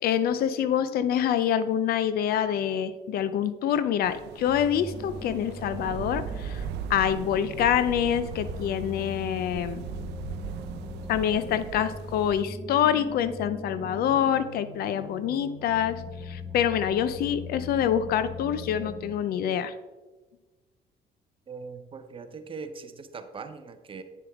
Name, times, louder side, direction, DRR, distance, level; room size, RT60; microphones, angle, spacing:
voice 1, 0.0-6.6 6.9-9.8 11.1-16.0 16.3-19.7, left 9 dB, 65° left, 13 dB, 0.5 m, -26 dB
sound 1, 4.0-12.4, right 8 dB, 80° right, 0.5 m, -39 dB
sound 2, 4.5-19.1, left 3 dB, 10° right, 1.5 m, -41 dB
voice 2, 21.5-24.0, right 5 dB, 30° right, 9 dB, 0.7 m, -41 dB
9.4 x 7.0 x 3.5 m, 1.2 s
cardioid pair, 110°, 17 cm